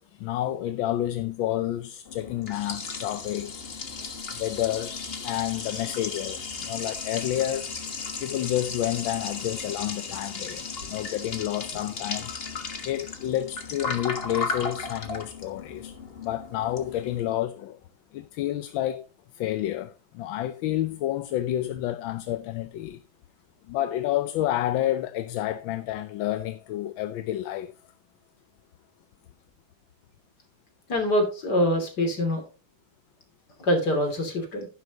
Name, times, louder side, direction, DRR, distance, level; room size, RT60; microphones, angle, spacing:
voice 1, 0.1-3.6 4.3-7.7 8.2-12.3 12.8-17.8 18.1-19.0 19.3-23.0 23.7-27.7, left 13 dB, 80° left, 1.4 m, -29 dB
Liquid, 2.1-17.2, left 4 dB, 35° left, 1.4 m, -35 dB
voice 2, 30.9-32.4 33.6-34.7, equal, 55° left, 3.4 m, -24 dB
11.5 x 10.5 x 2.9 m
omnidirectional pair, 2.1 m